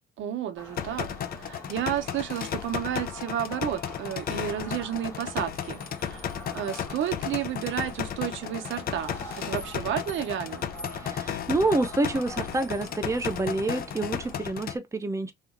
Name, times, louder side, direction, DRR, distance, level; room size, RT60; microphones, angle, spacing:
voice 1, 0.2-1.1 1.4-9.1 9.4-10.7, right 10 dB, 75° right, 0.7 m, -31 dB
sound 1, 0.6-14.4, left 1 dB, 15° left, 1.5 m, -45 dB
sound 2, 0.8-14.8, left 8 dB, 50° left, 0.4 m, -34 dB
voice 2, 11.0-15.3, right 2 dB, 15° right, 0.6 m, -28 dB
2.8 x 2.4 x 2.5 m
cardioid pair, 90°, 20 cm